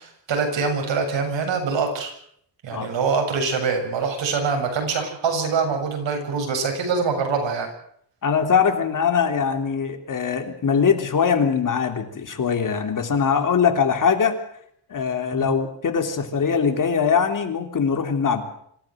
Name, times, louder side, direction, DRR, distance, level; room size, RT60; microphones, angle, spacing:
voice 1, 0.0-2.1 2.6-7.7 15.3-15.5, right 5 dB, 85° right, 4 dB, 7.8 m, -24 dB
voice 2, 8.2-14.4 14.9-18.4, left 6 dB, 45° left, 6 dB, 3.3 m, -22 dB
26.0 x 16.0 x 7.9 m, 0.68 s
wide cardioid pair, 160°, 43 cm